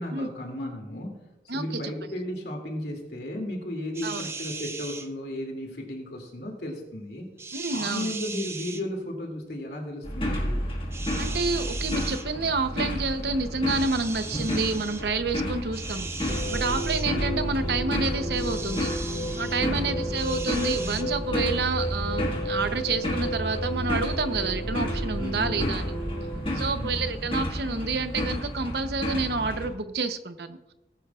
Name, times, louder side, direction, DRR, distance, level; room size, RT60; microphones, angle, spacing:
voice 1, 0.0-7.3 7.7-10.6 19.7-19.9 25.2-25.9 26.5-27.0, left 1 dB, 65° left, 2 dB, 2.5 m, -35 dB
voice 2, 1.5-1.9 4.0-4.3 7.5-8.1 11.2-25.8 26.5-30.6, right 3 dB, 65° right, 9 dB, 0.8 m, -29 dB
sound 1, 3.9-5.1 7.4-8.8 10.9-12.3 13.7-15.0 15.7-17.1 18.3-19.6 20.1-21.0, right 4 dB, 15° right, 0.5 m, -38 dB
sound 2, 10.0-29.7, left 1 dB, 30° left, 1.7 m, -32 dB
sound 3, 16.3-26.4, right 1 dB, 35° right, 4.0 m, -31 dB
19.5 x 9.8 x 2.4 m, 0.99 s
head